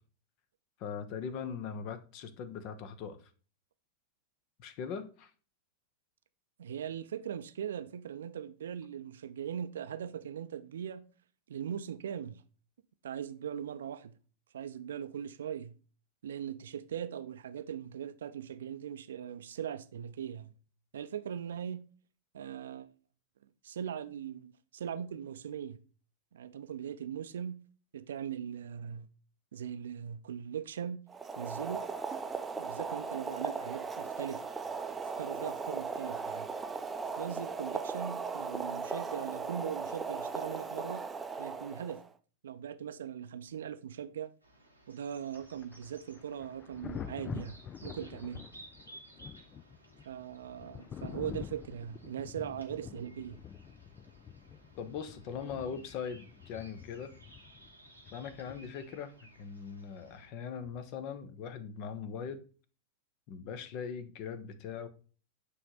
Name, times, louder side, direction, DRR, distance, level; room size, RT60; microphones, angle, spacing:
voice 1, 0.8-3.2 4.6-5.3 54.8-57.1 58.1-62.4 63.3-64.9, left 6 dB, 40° left, 0.9 m, -40 dB
voice 2, 6.6-11.0 11.5-12.4 13.0-14.1 14.5-15.7 16.2-20.5 20.9-21.8 22.3-22.9 23.6-25.8 26.3-27.6 27.9-29.1 29.5-31.0 31.4-31.9 32.6-34.4 35.2-36.5 37.2-41.1 41.4-42.0 42.4-44.3 44.9-48.4 50.1-53.4, right 9 dB, 65° right, 0.6 m, -40 dB
Boiling, 31.1-42.1, right 4 dB, 15° right, 0.6 m, -38 dB
sound 1, 44.4-60.3, right 2 dB, 90° left, 1.8 m, -58 dB
Thunder, 45.3-59.0 60.6-60.9, left 8 dB, 25° left, 0.3 m, -47 dB
9.8 x 3.3 x 3.8 m
figure-of-eight pair, 90°, 0 cm